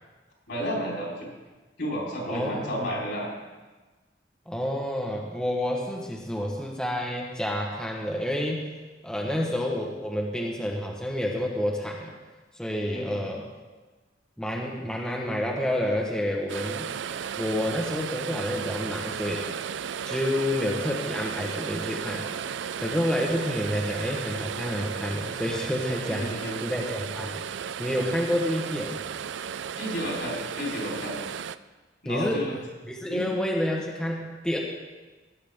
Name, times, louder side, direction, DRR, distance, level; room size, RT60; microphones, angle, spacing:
voice 1, 0.5-1.3 1.8-3.3 9.2-9.4 12.9-13.3 26.1-26.6 29.8-31.1 32.0-32.5 33.1-33.3, equal, 70° left, -4 dB, 4.3 m, -32 dB
voice 2, 2.3-3.0 4.5-8.7 9.0-12.2 12.6-13.5 14.4-16.9 17.4-19.5 20.0-22.3 22.8-26.3 26.6-27.4 27.8-29.0 32.0-32.4 32.8-34.6, left 1 dB, 5° left, -2 dB, 1.2 m, -29 dB
sound 1, 16.5-31.6, right 7 dB, 70° right, 0.4 m, -34 dB
17.0 x 9.3 x 3.7 m, 1.2 s
head